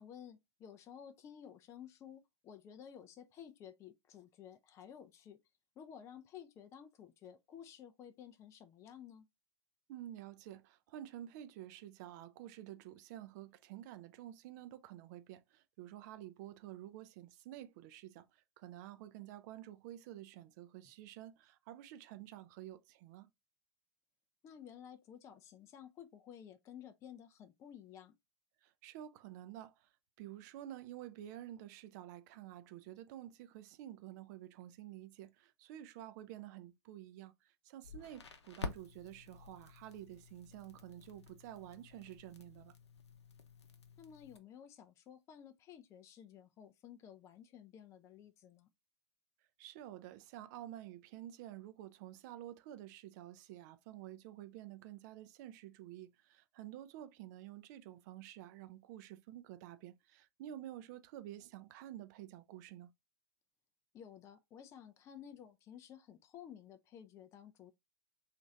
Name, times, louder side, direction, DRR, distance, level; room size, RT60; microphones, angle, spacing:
voice 1, 0.0-5.4 5.8-9.3 24.4-28.1 44.0-48.7 63.9-67.7, left 9 dB, 20° left, 0.4 m, -54 dB
voice 2, 9.9-23.3 28.6-29.7 30.2-37.3 37.6-42.7 49.6-62.9, right 12 dB, 40° right, 0.4 m, -50 dB
Crackle, 37.8-44.4, left 4 dB, 80° left, 0.6 m, -50 dB
3.0 x 2.5 x 3.8 m
figure-of-eight pair, 100°, 14 cm